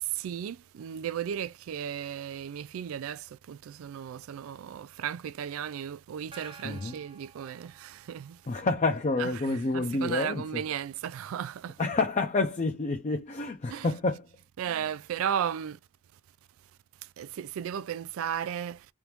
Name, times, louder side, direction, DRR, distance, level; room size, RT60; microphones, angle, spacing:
voice 1, 0.0-8.4 9.2-11.8 13.7-13.9 14.6-15.8 17.2-18.9, right 9 dB, 70° right, 0.3 m, -35 dB
Gong, 6.3-8.3, right 3 dB, 25° right, 0.7 m, -51 dB
voice 2, 6.6-7.0 8.5-10.6 11.8-14.3 14.7-14.9, left 3 dB, 35° left, 0.5 m, -29 dB
3.5 x 2.4 x 2.9 m
head